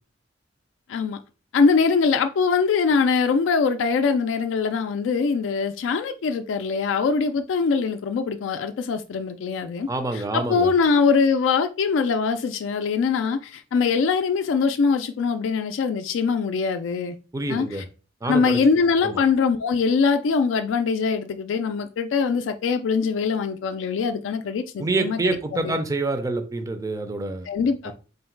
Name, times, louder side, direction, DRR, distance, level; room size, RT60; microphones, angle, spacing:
voice 1, 1.5-17.1 17.5-17.8 18.2-25.8 27.5-27.9, left 5 dB, 90° left, 0.3 m, -22 dB
voice 2, 9.9-10.7 17.3-17.8 18.2-18.6 19.0-19.2 24.8-27.5, right 2 dB, 20° right, 0.4 m, -27 dB
3.8 x 2.1 x 4.4 m
head